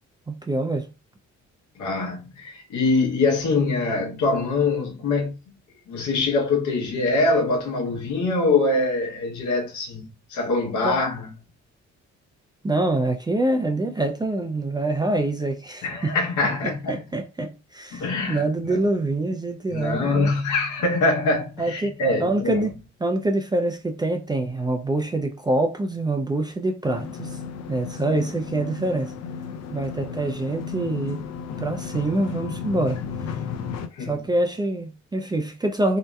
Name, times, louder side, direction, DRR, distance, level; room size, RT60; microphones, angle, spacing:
voice 1, 0.3-0.9 10.8-11.0 12.6-16.2 16.9-20.3 21.6-22.7 23.0-27.4 27.7-29.1 29.7-31.3 31.6-33.0 34.0-36.0, right 2 dB, 15° right, 0.3 m, -25 dB
voice 2, 1.8-5.5 5.9-11.3 15.8-17.0 17.9-18.4 18.7-18.8 19.7-22.7 34.0-34.3, left 3 dB, 75° left, 0.9 m, -24 dB
sound 1, 26.9-33.9, left 6 dB, 60° left, 0.4 m, -34 dB
2.7 x 2.1 x 2.2 m
cardioid pair, 90°, 30 cm